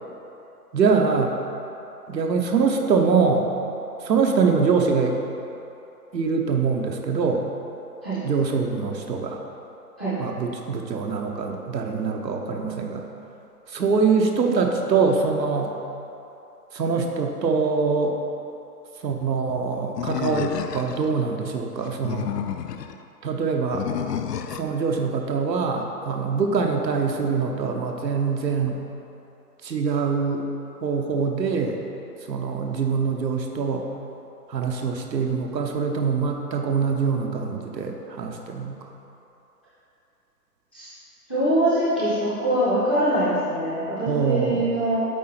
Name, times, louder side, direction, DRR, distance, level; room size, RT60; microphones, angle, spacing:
voice 1, 0.7-1.3 2.1-3.5 4.0-5.2 6.1-7.4 8.2-9.4 10.2-13.0 13.7-15.7 16.7-18.2 19.0-22.3 23.2-23.9 24.6-28.8 29.6-30.5 30.8-31.8 32.3-33.9 34.5-38.8 44.1-44.8, right 5 dB, 90° right, 2 dB, 1.0 m, -24 dB
Animal, 20.0-21.1 21.9-22.9 23.7-24.7, left 9 dB, 70° left, 0.5 m, -30 dB
voice 2, 41.3-45.1, right 1 dB, 5° left, -16 dB, 0.5 m, -23 dB
8.3 x 3.9 x 4.4 m, 2.9 s
hypercardioid pair, 150°, 49 cm